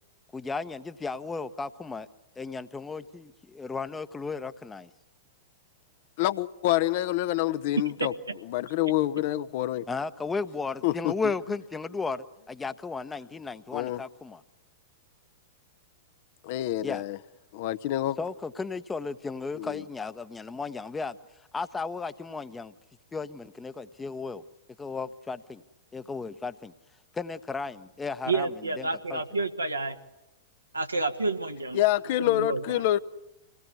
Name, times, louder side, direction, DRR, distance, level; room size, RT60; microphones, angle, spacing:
voice 1, 0.3-2.1 2.4-4.9 9.9-14.4 16.8-17.0 18.2-21.2 21.5-22.7 23.1-24.4 24.8-25.6 25.9-26.7 27.1-28.5 28.8-29.2, left 4 dB, 10° left, 0.9 m, -35 dB
voice 2, 6.2-8.1 8.5-9.8 10.8-11.1 13.7-14.0 16.4-17.2 17.5-18.2 19.6-19.8 31.7-33.0, left 14 dB, 50° left, 0.8 m, -27 dB
voice 3, 28.2-30.0 30.7-31.8 32.2-32.9, right 3 dB, 85° right, 1.7 m, -29 dB
26.0 x 18.5 x 9.6 m
figure-of-eight pair, 100°, 0 cm